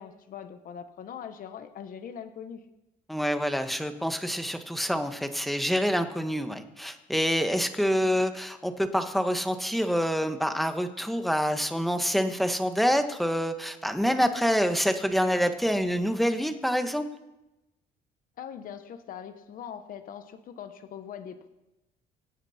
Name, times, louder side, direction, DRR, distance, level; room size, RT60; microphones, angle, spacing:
voice 1, 0.0-2.6 18.4-21.5, left 8 dB, 55° left, 8 dB, 1.3 m, -41 dB
voice 2, 3.1-17.1, equal, ahead, 7 dB, 1.4 m, -26 dB
25.5 x 9.4 x 4.4 m, 0.95 s
cardioid pair, 110°, 17 cm